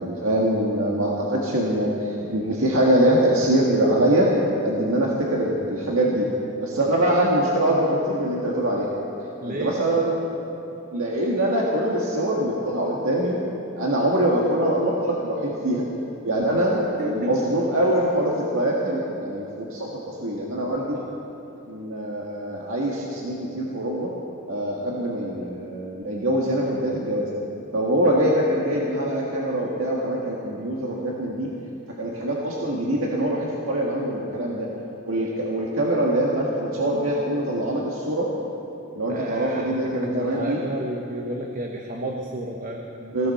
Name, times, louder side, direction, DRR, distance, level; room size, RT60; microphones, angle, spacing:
voice 1, 0.0-4.3 4.6-6.3 6.6-8.9 9.5-10.1 10.9-13.4 13.8-15.9 16.2-21.0 21.7-24.1 24.5-27.3 27.7-31.5 32.0-34.7 35.0-38.3 38.9-40.6 43.0-43.3, right 1 dB, 80° right, -3 dB, 1.8 m, -23 dB
voice 2, 9.4-9.8 17.0-17.4 20.9-21.1 39.1-39.7 40.0-42.8, right 1 dB, 40° right, 1 dB, 1.0 m, -31 dB
20.5 x 15.5 x 4.3 m, 2.9 s
head